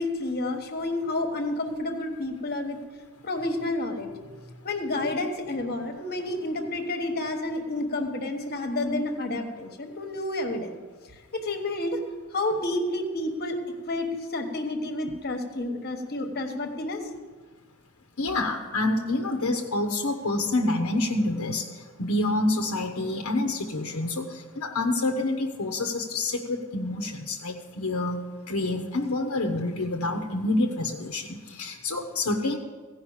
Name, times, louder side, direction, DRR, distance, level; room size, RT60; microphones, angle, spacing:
voice 1, 0.0-2.8 3.2-4.1 4.6-10.7 11.3-12.0 12.3-13.6 13.9-17.0, left 2 dB, 45° left, 5 dB, 1.3 m, -30 dB
voice 2, 18.2-21.6 22.0-24.3 24.6-32.6, left 2 dB, 70° left, 2 dB, 0.9 m, -27 dB
16.0 x 5.4 x 7.2 m, 1.4 s
head